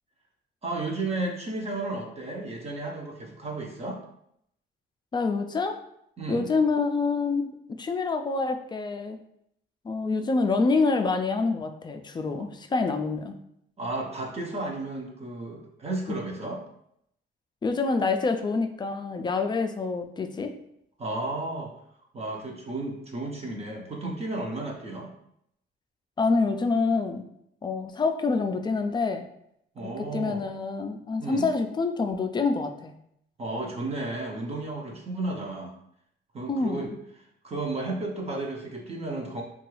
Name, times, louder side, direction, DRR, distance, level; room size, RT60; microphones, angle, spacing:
voice 1, 0.6-4.0 6.2-6.5 13.8-16.6 21.0-21.7 22.1-25.1 29.8-30.4 31.2-31.5 33.4-35.7 36.3-36.9 37.4-39.4, right 2 dB, 30° right, 0 dB, 0.6 m, -33 dB
voice 2, 5.1-5.8 6.3-7.5 7.8-9.2 9.8-13.4 17.6-20.5 26.2-27.3 27.6-29.2 29.8-32.9 36.5-36.9, left 4 dB, 25° left, 6 dB, 0.3 m, -26 dB
2.9 x 2.3 x 3.0 m, 0.74 s
cardioid pair, 90°, 20 cm